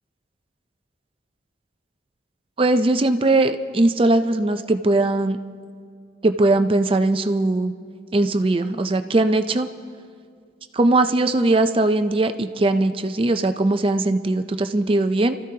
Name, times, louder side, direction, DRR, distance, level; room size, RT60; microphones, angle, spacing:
voice 1, 2.6-5.4 6.2-7.7 8.1-9.7 10.7-15.4, right 2 dB, 30° right, 9 dB, 0.4 m, -20 dB
30.0 x 13.5 x 2.8 m, 2.1 s
head